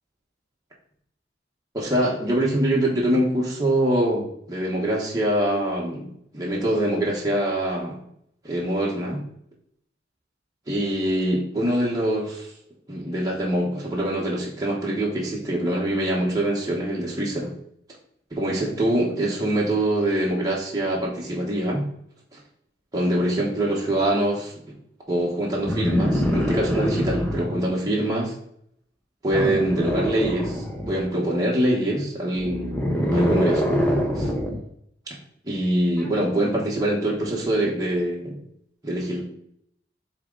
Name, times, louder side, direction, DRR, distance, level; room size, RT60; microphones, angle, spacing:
voice 1, 1.7-8.0 8.4-9.2 10.7-12.5 12.9-17.5 18.3-21.9 22.3-22.4 22.9-24.5 25.1-28.3 29.2-32.8 33.1-33.8 34.1-34.3 35.4-38.4 38.8-39.2, right 1 dB, 20° right, -4 dB, 1.2 m, -24 dB
sound 1, 25.6-27.6 29.3-31.0 32.3-34.6 36.0-36.1, equal, 10° left, 0.8 m, -24 dB
7.0 x 3.6 x 3.9 m, 0.70 s
head